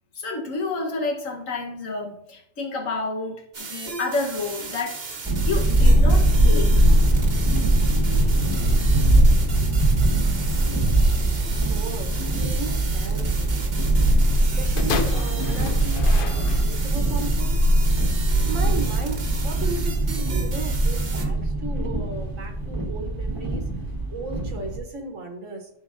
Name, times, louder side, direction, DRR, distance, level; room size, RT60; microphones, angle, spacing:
voice 1, 0.1-5.0 5.4-6.7, left 3 dB, 85° left, 2 dB, 1.5 m, -29 dB
sound 1, 3.5-21.2, right 4 dB, 50° right, 1.1 m, -36 dB
sound 2, 5.2-24.8, right 1 dB, 20° right, 1.0 m, -21 dB
voice 2, 11.4-13.8 14.4-17.6 18.5-23.7 24.1-25.7, right 3 dB, 80° right, 4 dB, 1.3 m, -36 dB
sound 3, 14.8-17.0 17.8-17.9, left 5 dB, 55° left, 0.6 m, -31 dB
13.0 x 4.5 x 2.5 m, 0.74 s
omnidirectional pair, 1.3 m